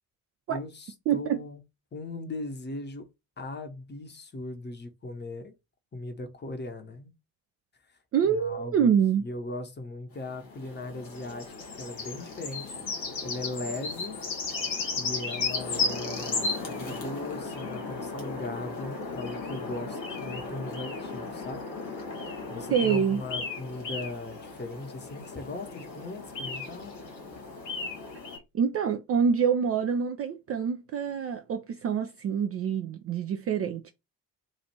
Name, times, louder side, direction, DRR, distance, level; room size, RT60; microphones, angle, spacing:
voice 1, 0.5-1.6 1.9-3.1 3.4-5.5 5.9-7.1 8.2-8.9 9.2-11.5 11.8-12.8 13.2-14.2 14.9-21.7 22.5-26.9, left 2 dB, 20° left, 0.8 m, -38 dB
voice 2, 1.1-1.4 8.1-9.2 22.7-23.2 28.5-33.9, right 7 dB, 30° right, 0.4 m, -26 dB
sound 1, 10.2-28.4, left 4 dB, 85° left, 0.8 m, -35 dB
3.1 x 2.4 x 4.2 m
figure-of-eight pair, 40°, 49 cm